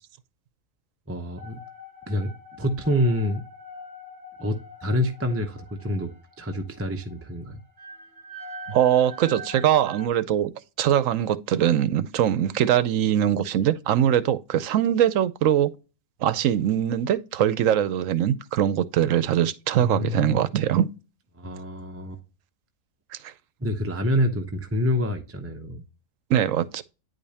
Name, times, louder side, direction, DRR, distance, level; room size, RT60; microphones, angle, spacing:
voice 1, 1.1-1.6 2.1-3.4 4.4-7.6 19.8-20.4 21.4-22.2 23.6-25.8, left 1 dB, 15° right, 0.5 m, -27 dB
sound 1, 1.4-10.1, equal, 35° right, 1.2 m, -44 dB
voice 2, 8.7-10.5 10.8-15.7 16.2-20.9 23.2-23.3 26.3-26.8, right 10 dB, 75° right, 1.0 m, -22 dB
9.7 x 5.1 x 2.8 m
omnidirectional pair, 1.4 m